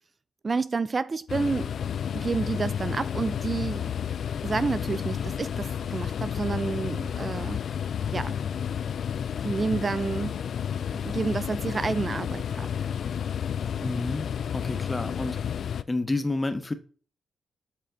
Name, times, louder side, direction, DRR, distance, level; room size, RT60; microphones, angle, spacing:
voice 1, 0.4-1.7 2.1-3.9 4.4-7.6 8.1-8.4 9.4-10.4 10.9-12.7, right 4 dB, 40° right, 0.3 m, -29 dB
sound 1, 1.3-15.8, left 8 dB, 70° left, 0.4 m, -31 dB
voice 2, 13.8-15.4 15.9-16.7, left 2 dB, 25° left, 1.1 m, -30 dB
8.0 x 4.4 x 3.7 m
cardioid pair, 65°, 0 cm